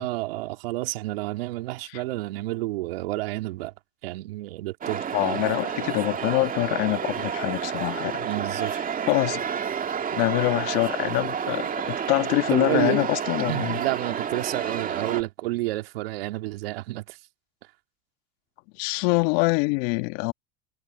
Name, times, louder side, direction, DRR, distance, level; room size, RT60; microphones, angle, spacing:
voice 1, 0.0-3.7 4.0-5.4 8.2-8.8 12.5-13.1 13.5-17.2, right 18 dB, 75° right, 2.0 m, -30 dB
sound 1, 4.8-15.2, right 7 dB, 30° right, 2.1 m, -30 dB
voice 2, 5.1-8.3 9.1-9.5 10.1-13.8 18.8-20.3, left 27 dB, 65° left, 1.8 m, -25 dB
hypercardioid pair, 90°, 30 cm